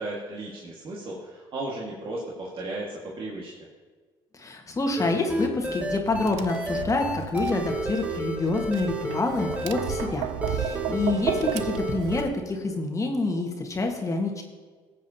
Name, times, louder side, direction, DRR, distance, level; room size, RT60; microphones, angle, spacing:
voice 1, 0.0-3.7, right 2 dB, 50° right, -4 dB, 1.7 m, -35 dB
voice 2, 4.3-14.4, left 3 dB, 30° left, 3 dB, 1.4 m, -27 dB
sound 1, 5.0-12.3, equal, 10° right, 1.2 m, -31 dB
Tap, 6.0-12.3, right 11 dB, 80° right, 0.5 m, -34 dB
17.0 x 7.5 x 2.8 m, 1.4 s
supercardioid pair, 75°, 12 cm